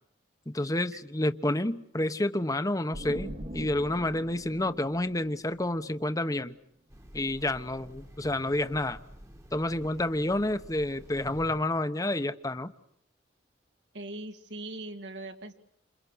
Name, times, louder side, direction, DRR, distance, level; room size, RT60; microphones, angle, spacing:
voice 1, 0.5-6.5 7.1-9.0 9.5-12.7, left 1 dB, 20° left, 10 dB, 1.1 m, -29 dB
sound 1, 2.9-6.5, equal, 40° right, 1.6 m, -42 dB
Train, 6.9-11.8, equal, 20° right, 1.6 m, -49 dB
voice 2, 13.9-15.5, right 2 dB, 75° right, 5 dB, 2.8 m, -40 dB
29.5 x 28.0 x 6.3 m, 0.70 s
head